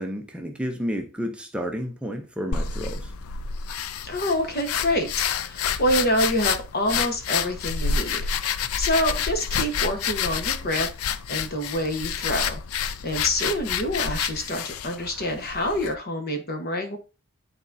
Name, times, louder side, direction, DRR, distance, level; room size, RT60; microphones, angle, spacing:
voice 1, 0.0-3.1, equal, 5° right, 0.5 m, -31 dB
sound 1, 2.5-15.9, left 7 dB, 75° left, 0.4 m, -29 dB
voice 2, 4.0-8.3 8.8-10.9 11.3-12.6 13.0-17.0, left 1 dB, 45° left, 1.2 m, -26 dB
10.5 x 4.1 x 2.6 m
head